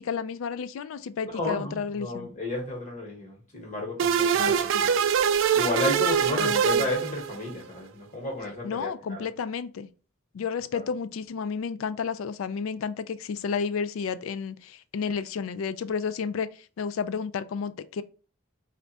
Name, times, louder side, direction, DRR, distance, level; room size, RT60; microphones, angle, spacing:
voice 1, 0.0-2.3 4.4-4.8 6.4-6.9 8.6-9.9 10.3-18.0, left 6 dB, 85° left, 0.4 m, -32 dB
voice 2, 1.3-4.9 5.5-9.2 10.7-10.9, left 2 dB, 40° left, 1.3 m, -32 dB
sound 1, 4.0-7.6, right 8 dB, 70° right, 0.3 m, -24 dB
3.3 x 2.5 x 4.0 m
head